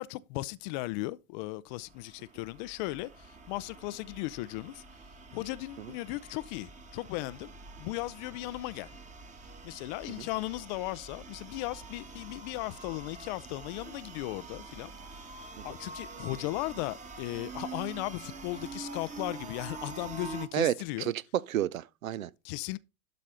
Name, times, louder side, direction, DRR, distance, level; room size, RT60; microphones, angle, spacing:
voice 1, 0.0-4.8 5.3-7.5 7.8-8.9 9.6-14.9 15.4-21.1 22.4-22.8, left 19 dB, 35° left, 0.4 m, -36 dB
sound 1, 1.7-20.5, right 4 dB, 15° right, 1.2 m, -46 dB
voice 2, 20.5-22.3, right 12 dB, 75° right, 0.6 m, -31 dB
12.0 x 4.2 x 4.9 m
hypercardioid pair, 100°, 41 cm